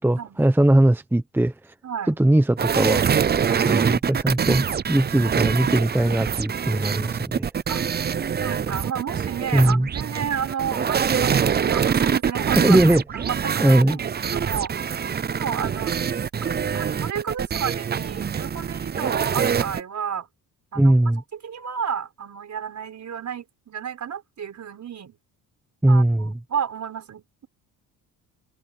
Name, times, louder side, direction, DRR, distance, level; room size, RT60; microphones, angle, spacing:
voice 1, 0.0-1.7 2.1-3.0 3.6-7.5 9.5-9.9 12.6-13.0 13.6-14.0 20.8-21.2 25.8-26.3, right 1 dB, 5° right, 1.0 m, -19 dB
voice 2, 1.8-2.2 3.4-3.7 7.7-7.9 8.4-12.8 13.1-15.0 15.3-15.9 16.4-20.3 20.7-20.9 21.4-25.2 25.9-27.5, right 8 dB, 50° right, 5.3 m, -31 dB
sound 1, 2.6-19.8, right 7 dB, 25° right, 0.6 m, -24 dB
cardioid pair, 105°, 38 cm